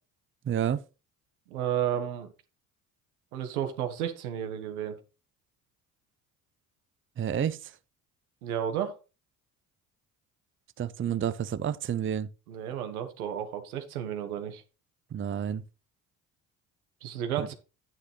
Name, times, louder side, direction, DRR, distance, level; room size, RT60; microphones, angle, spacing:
voice 1, 0.4-0.8 7.2-7.8 10.8-12.3 15.1-15.6 17.4-17.5, right 9 dB, 30° right, 0.6 m, -30 dB
voice 2, 1.5-2.3 3.3-5.0 8.4-9.0 12.5-14.6 17.0-17.5, right 10 dB, 85° right, 1.6 m, -32 dB
9.4 x 9.2 x 3.2 m
hypercardioid pair, 55°, 42 cm